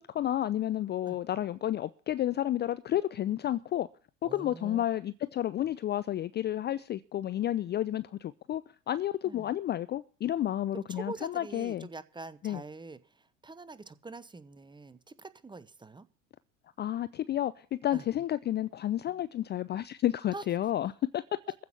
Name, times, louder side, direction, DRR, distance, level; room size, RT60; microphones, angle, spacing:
voice 1, 0.0-3.9 4.2-8.6 8.9-11.9 12.4-12.6 16.8-21.2, left 12 dB, 25° left, 0.5 m, -31 dB
voice 2, 4.2-4.9 9.2-9.5 10.7-16.1 17.9-18.1 20.3-20.4, right 3 dB, 10° right, 0.9 m, -44 dB
15.0 x 6.1 x 8.7 m
figure-of-eight pair, 70°, 40 cm